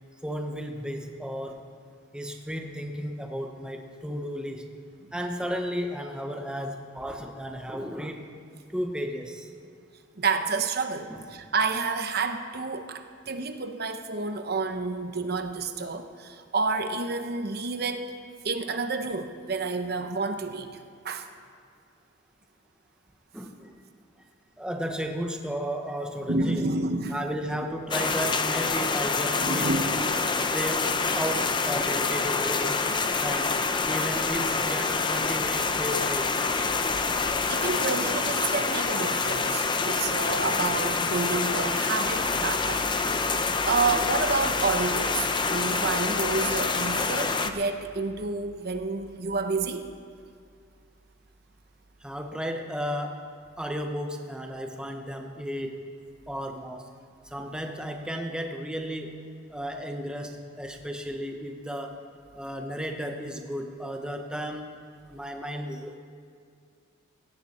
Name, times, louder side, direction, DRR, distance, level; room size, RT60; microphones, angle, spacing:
voice 1, 0.2-1.6 2.1-4.7 5.1-8.3 8.7-9.5 11.1-11.2 23.3-23.7 24.6-26.7 27.1-30.1 30.5-32.8 33.2-33.6 33.9-36.3 52.0-53.2 53.6-55.8 56.3-56.8 57.2-62.0 62.3-64.7 65.1-66.0, equal, 5° right, 3 dB, 1.0 m, -34 dB
voice 2, 10.2-18.1 18.4-20.8 21.0-21.3 26.3-27.2 27.5-27.6 29.4-29.9 37.5-42.8 43.3-49.8, right 3 dB, 55° right, 7 dB, 0.9 m, -29 dB
sound 1, 27.9-47.5, left 4 dB, 25° left, 0.7 m, -26 dB
18.0 x 17.0 x 4.3 m, 2.3 s
head